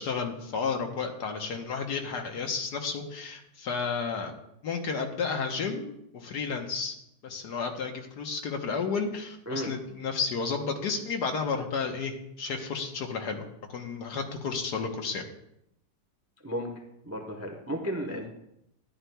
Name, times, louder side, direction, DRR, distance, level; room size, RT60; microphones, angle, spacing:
voice 1, 0.0-4.3 4.6-6.9 7.2-15.2 18.1-18.2, left 5 dB, 65° left, 4 dB, 1.6 m, -32 dB
voice 2, 16.4-16.7 17.0-18.3, equal, 15° right, 2 dB, 0.6 m, -33 dB
13.0 x 11.0 x 2.3 m, 0.79 s
omnidirectional pair, 1.9 m